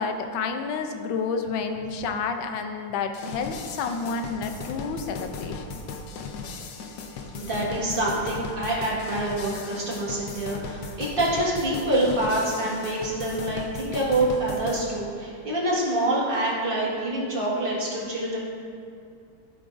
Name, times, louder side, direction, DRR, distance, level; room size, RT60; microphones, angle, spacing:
voice 1, 0.0-5.6, left 5 dB, 85° left, 6 dB, 1.4 m, -30 dB
sound 1, 3.1-14.9, left 4 dB, 65° left, 1.1 m, -37 dB
voice 2, 7.3-18.4, right 1 dB, 30° right, -5 dB, 1.7 m, -26 dB
13.5 x 5.9 x 2.5 m, 2.3 s
omnidirectional pair, 2.1 m